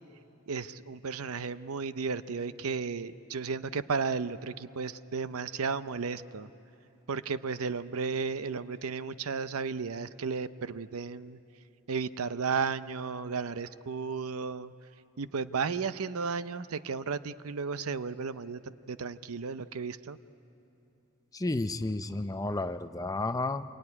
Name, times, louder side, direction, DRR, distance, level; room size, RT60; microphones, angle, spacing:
voice 1, 0.5-6.5 7.1-11.4 11.9-14.7 15.2-20.2, right 5 dB, 75° right, 14 dB, 0.7 m, -34 dB
voice 2, 21.3-23.6, left 2 dB, 15° left, 10 dB, 0.5 m, -32 dB
27.0 x 22.0 x 9.7 m, 3.0 s
head